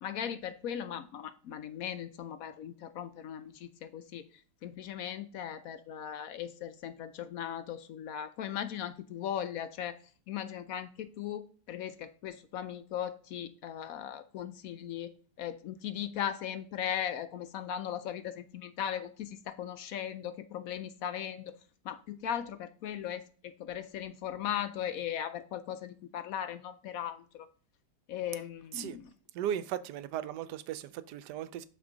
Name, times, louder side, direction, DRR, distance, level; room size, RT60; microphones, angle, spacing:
voice 1, 0.0-4.2 4.6-10.0 10.3-15.1 15.4-21.5 21.8-27.5 28.1-29.1, left 9 dB, 70° left, 0.9 m, -38 dB
voice 2, 29.3-31.7, right 10 dB, 85° right, 1.2 m, -36 dB
6.1 x 6.1 x 3.8 m
omnidirectional pair, 1.7 m